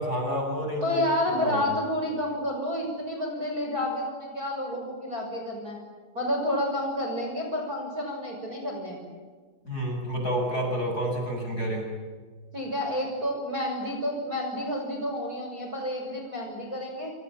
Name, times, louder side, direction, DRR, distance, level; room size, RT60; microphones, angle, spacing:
voice 1, 0.0-1.0 1.3-1.7 9.6-11.9, equal, 20° left, 1 dB, 7.4 m, -29 dB
voice 2, 0.8-5.8 6.1-9.0 12.5-17.1, left 1 dB, 20° right, 1 dB, 6.4 m, -30 dB
28.5 x 27.5 x 7.4 m, 1.6 s
omnidirectional pair, 5.3 m